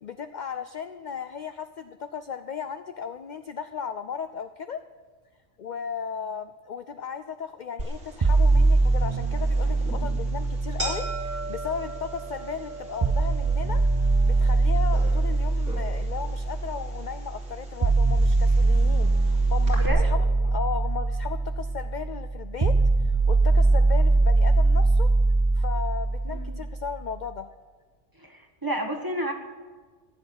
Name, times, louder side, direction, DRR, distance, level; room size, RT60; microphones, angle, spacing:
voice 1, 0.0-4.8 5.6-13.8 14.2-22.7 23.0-25.1 25.5-27.5, left 7 dB, 55° left, 10 dB, 0.5 m, -35 dB
sound 1, 7.8-19.9, right 2 dB, 70° right, 3.6 m, -40 dB
sound 2, 8.2-12.2 13.0-27.0, right 3 dB, 35° right, 0.4 m, -22 dB
voice 2, 26.3-26.6 28.2-29.3, right 1 dB, 15° right, 3 dB, 1.4 m, -31 dB
16.0 x 7.0 x 9.8 m, 1.5 s
omnidirectional pair, 1.3 m